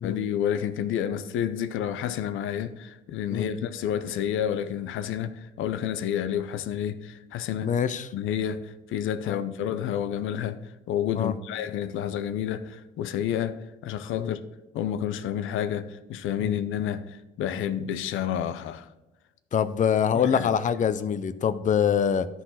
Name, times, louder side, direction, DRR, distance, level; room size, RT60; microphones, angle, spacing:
voice 1, 0.0-7.7 8.1-10.6 10.9-14.4 14.7-18.9 20.1-20.5, left 9 dB, 85° left, 0.6 m, -30 dB
voice 2, 7.6-8.1 9.3-9.4 11.1-11.3 14.2-14.3 16.4-16.5 19.5-22.3, left 8 dB, 40° left, 0.5 m, -24 dB
11.5 x 4.0 x 5.7 m
cardioid pair, 90°, 20 cm